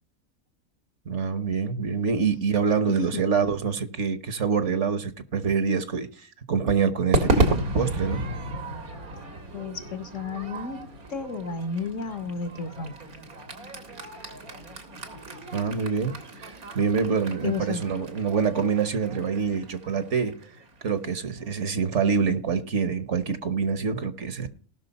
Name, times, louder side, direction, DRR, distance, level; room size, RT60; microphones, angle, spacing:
voice 1, 1.1-8.2 15.5-20.4 20.8-24.5, right 6 dB, 55° right, 1.4 m, -26 dB
voice 2, 2.9-3.2 9.5-13.0 17.0-17.1 17.4-17.8, left 4 dB, 60° left, 1.5 m, -33 dB
Crowd / Fireworks, 7.1-21.5, right 2 dB, 80° right, 2.4 m, -32 dB
19.0 x 6.3 x 4.1 m
omnidirectional pair, 1.5 m